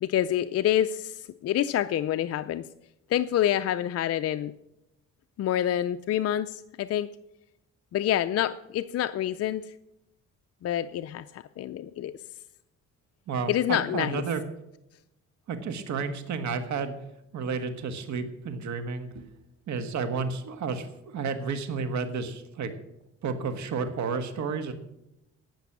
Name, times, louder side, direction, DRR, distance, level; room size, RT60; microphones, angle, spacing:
voice 1, 0.0-2.7 3.1-4.5 5.4-7.1 7.9-9.7 10.6-12.1 13.5-14.2, left 11 dB, 55° left, 10 dB, 0.5 m, -27 dB
voice 2, 13.3-14.4 15.5-16.9 17.3-19.3 19.7-22.7 23.2-24.7, right 5 dB, 70° right, 9 dB, 1.5 m, -31 dB
17.5 x 6.1 x 6.0 m, 0.86 s
cardioid pair, 90°, 30 cm